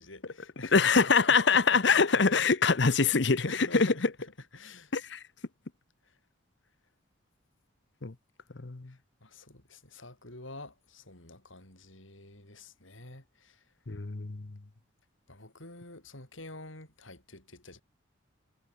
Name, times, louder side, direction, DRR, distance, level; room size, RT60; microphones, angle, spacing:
voice 1, 0.0-1.0 1.5-1.8 3.5-4.9 6.0-6.2 8.9-13.7 15.3-17.8, left 2 dB, 75° left, 7.2 m, -47 dB
voice 2, 0.7-3.9 4.9-5.2 8.0-8.1 8.6-8.9 13.9-14.5, left 5 dB, 60° left, 0.9 m, -24 dB
head